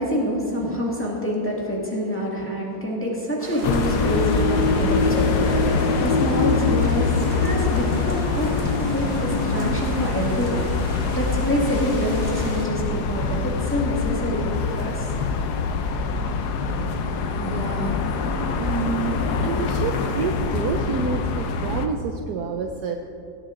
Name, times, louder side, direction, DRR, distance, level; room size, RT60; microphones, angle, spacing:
voice 1, 0.0-15.1, equal, 5° left, -3 dB, 1.6 m, -26 dB
sound 1, 3.4-12.7, right 3 dB, 40° right, 1.0 m, -37 dB
sound 2, 3.6-21.9, left 4 dB, 65° left, 1.2 m, -24 dB
voice 2, 17.4-18.1 18.6-23.0, right 6 dB, 70° right, 4 dB, 1.0 m, -29 dB
17.5 x 9.6 x 3.8 m, 2.6 s
omnidirectional pair, 2.1 m